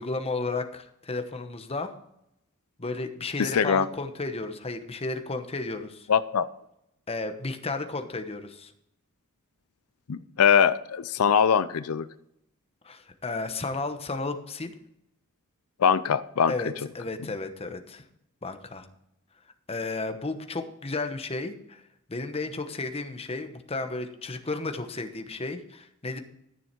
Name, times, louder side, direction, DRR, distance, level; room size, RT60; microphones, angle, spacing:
voice 1, 0.0-1.9 2.8-6.1 7.1-8.7 12.8-14.7 16.5-18.0 18.4-18.9 19.7-21.8 22.1-26.2, left 3 dB, 30° left, 7 dB, 1.0 m, -33 dB
voice 2, 3.4-3.9 6.1-6.5 10.1-12.1 15.8-16.5, left 7 dB, 90° left, 15 dB, 0.5 m, -22 dB
13.5 x 7.0 x 4.5 m, 0.78 s
head